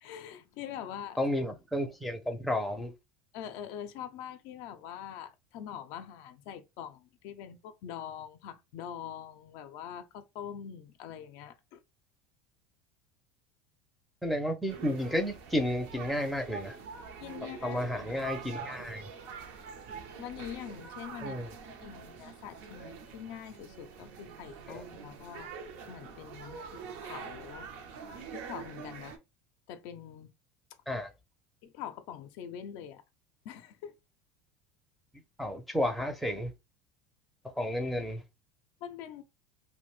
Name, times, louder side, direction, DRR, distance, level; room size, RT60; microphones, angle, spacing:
voice 1, 0.0-1.2 3.3-11.8 17.2-17.8 20.2-25.6 25.9-27.7 28.3-29.2 29.7-30.3 31.6-33.0 33.4-34.0 38.8-39.2, left 9 dB, 65° left, 0.4 m, -44 dB
voice 2, 1.2-2.9 14.2-16.8 17.6-19.1 21.2-21.5 24.7-24.8 30.9-31.1 35.4-36.5 37.6-38.2, left 1 dB, ahead, 0.5 m, -32 dB
sound 1, 14.7-29.2, right 6 dB, 70° right, 0.6 m, -45 dB
2.5 x 2.1 x 3.1 m
supercardioid pair, 120°, 7 cm